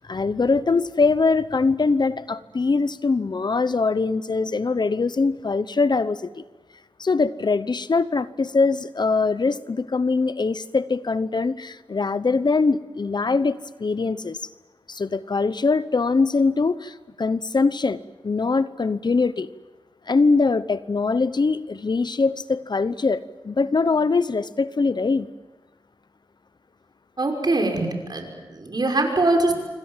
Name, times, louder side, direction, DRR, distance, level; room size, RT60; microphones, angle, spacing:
voice 1, 0.1-6.4 7.0-14.4 14.9-19.5 20.1-25.3, left 4 dB, 50° left, 15 dB, 0.9 m, -22 dB
voice 2, 27.2-29.5, right 2 dB, 50° right, 3 dB, 6.0 m, -22 dB
26.5 x 25.0 x 7.5 m, 1.2 s
cardioid pair, 55°, 9 cm